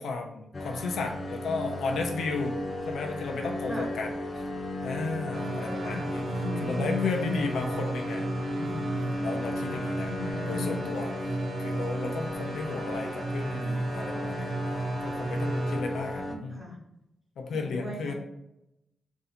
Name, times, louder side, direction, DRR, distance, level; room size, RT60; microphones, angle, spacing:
voice 1, 0.0-2.6 2.9-4.1 4.8-6.2 6.6-8.2 8.6-10.1 10.5-11.1 11.6-14.5 15.0-16.7 17.4-18.1, left 4 dB, 85° left, 3 dB, 0.5 m, -34 dB
sound 1, 0.5-16.4, left 1 dB, 20° left, 0.5 m, -35 dB
sound 2, 5.3-15.8, right 2 dB, 50° right, 0.5 m, -34 dB
voice 2, 5.5-7.5 9.8-10.9 16.3-16.8 17.5-18.1, left 3 dB, 10° right, -3 dB, 1.0 m, -37 dB
3.9 x 2.6 x 4.2 m, 0.84 s
wide cardioid pair, 165°, 0 cm